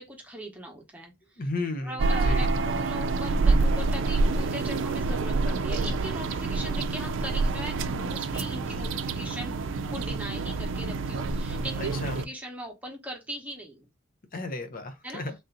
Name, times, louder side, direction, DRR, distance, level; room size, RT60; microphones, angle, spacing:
voice 1, 0.0-1.5 1.8-9.6 9.9-13.9 15.0-15.2, equal, 10° right, 0.9 m, -40 dB
voice 2, 1.4-2.5 11.8-12.3 14.3-15.3, left 2 dB, 45° left, 0.6 m, -34 dB
sound 1, 2.0-12.2, right 3 dB, 70° right, 0.4 m, -27 dB
3.4 x 2.7 x 3.8 m
head